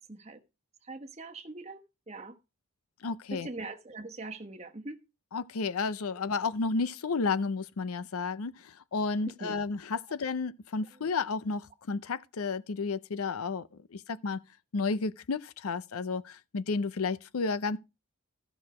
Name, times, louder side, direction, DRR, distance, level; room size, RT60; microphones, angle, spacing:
voice 1, 0.1-0.4 0.9-1.8 2.1-2.4 3.3-5.0 9.2-9.6, right 2 dB, 30° right, 1.1 m, -41 dB
voice 2, 3.0-3.5 5.3-13.6 13.9-14.4 14.7-17.8, left 4 dB, 85° left, 0.6 m, -32 dB
14.0 x 6.1 x 4.8 m
head